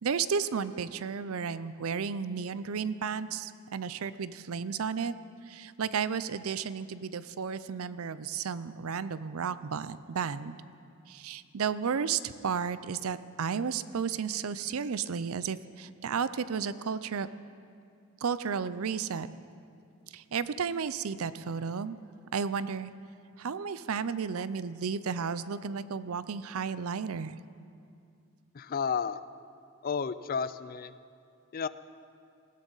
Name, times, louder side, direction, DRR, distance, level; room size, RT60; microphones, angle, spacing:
voice 1, 0.0-5.1 5.4-10.6 11.1-17.3 18.2-19.3 20.1-22.0 22.3-22.9 23.4-27.4, right 6 dB, 70° right, 15 dB, 0.5 m, -33 dB
voice 2, 28.5-29.2 29.8-30.9 31.5-31.7, left 6 dB, 40° left, 15 dB, 0.4 m, -32 dB
19.5 x 16.0 x 4.0 m, 2.4 s
head